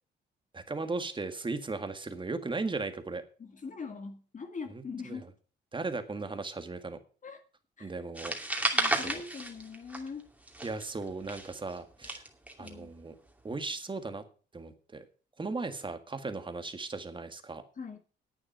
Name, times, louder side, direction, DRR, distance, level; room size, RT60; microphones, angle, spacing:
voice 1, 0.5-3.2 4.7-5.2 5.7-7.0 7.8-8.4 8.9-9.2 10.6-12.2 12.6-13.2 13.4-14.2 14.5-15.0 15.4-17.6, right 3 dB, 25° right, 1.8 m, -37 dB
voice 2, 3.4-5.3 7.2-7.4 7.8-7.9 8.7-10.3 12.6-12.9 17.8-18.0, left 5 dB, 40° left, 1.8 m, -42 dB
sound 1, 8.2-10.2 10.5-12.7, right 1 dB, 5° right, 2.6 m, -32 dB
10.5 x 8.9 x 5.6 m
cardioid pair, 90°, 20 cm